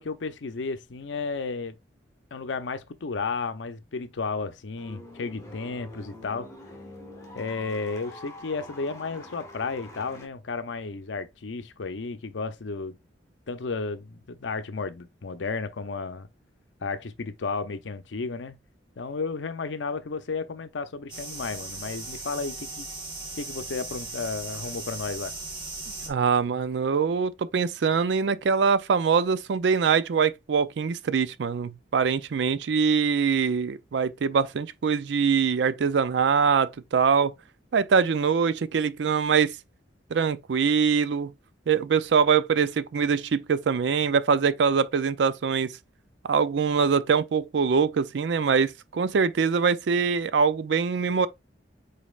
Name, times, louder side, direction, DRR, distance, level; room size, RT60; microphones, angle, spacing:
voice 1, 0.0-1.8 2.3-6.5 7.3-13.0 13.5-16.3 16.8-18.6 19.0-22.9 23.4-25.4, left 4 dB, 90° left, 0.6 m, -33 dB
sound 1, 4.8-10.3, left 1 dB, 20° left, 1.4 m, -45 dB
sound 2, 21.1-26.1, right 3 dB, 25° right, 1.2 m, -38 dB
voice 2, 26.1-37.3 37.7-39.6 40.1-41.3 41.7-45.7 46.3-51.3, right 6 dB, 70° right, 0.4 m, -23 dB
5.2 x 4.1 x 2.4 m
head